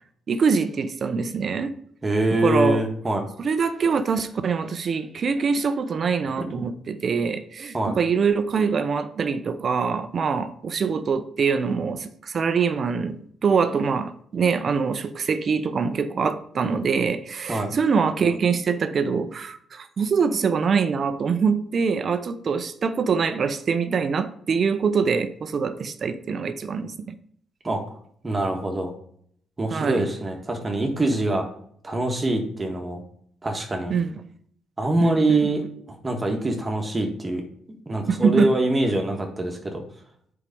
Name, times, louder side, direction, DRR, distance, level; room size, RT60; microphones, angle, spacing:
voice 1, 0.3-1.7 2.4-2.8 3.4-27.1 29.7-30.0 33.9-34.2 35.0-35.5 38.1-38.5, right 5 dB, 50° right, 0.7 m, -24 dB
voice 2, 2.0-3.2 6.5-6.6 7.7-8.0 17.5-17.8 27.6-27.8 28.2-28.9 29.6-31.5 31.8-33.0 33.4-33.9 34.8-35.6 35.9-37.4 37.7-39.8, right 1 dB, 25° right, 1.6 m, -24 dB
8.2 x 4.8 x 5.4 m
cardioid pair, 90°, 0 cm